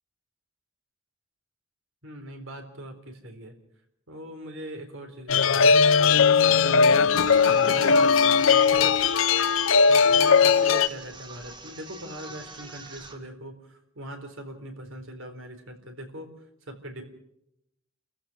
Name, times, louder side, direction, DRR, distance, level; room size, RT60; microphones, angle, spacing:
voice 1, 2.0-3.5 4.1-5.8 6.5-9.0 9.8-16.3 16.7-17.0, right 1 dB, 70° right, 5 dB, 3.9 m, -41 dB
sound 1, 5.3-10.9, left 5 dB, 70° left, 0.7 m, -19 dB
sound 2, 7.1-13.2, right 3 dB, 25° right, 2.0 m, -45 dB
29.5 x 15.0 x 6.2 m, 0.79 s
head